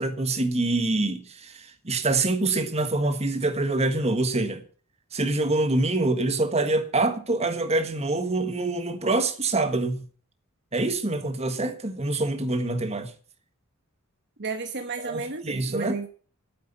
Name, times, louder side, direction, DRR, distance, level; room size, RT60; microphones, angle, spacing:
voice 1, 0.0-4.6 5.1-10.0 10.7-13.1 15.0-15.9, right 2 dB, 30° right, 1.6 m, -25 dB
voice 2, 14.4-16.1, right 4 dB, 50° right, 1.2 m, -32 dB
9.5 x 8.5 x 8.4 m
head